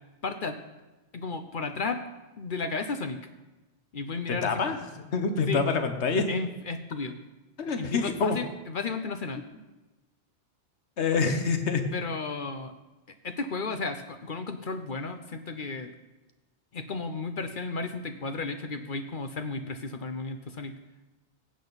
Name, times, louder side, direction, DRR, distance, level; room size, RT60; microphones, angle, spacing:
voice 1, 0.2-0.6 1.1-2.0 2.4-3.2 3.9-4.7 5.5-5.6 6.3-7.2 7.8-9.4 11.9-12.7 13.2-15.9 16.7-20.7, left 4 dB, 50° left, 7 dB, 0.8 m, -33 dB
voice 2, 4.4-6.3 7.6-8.4 11.0-11.8, left 4 dB, 75° left, 7 dB, 1.4 m, -26 dB
15.5 x 8.8 x 4.0 m, 1.1 s
omnidirectional pair, 1.2 m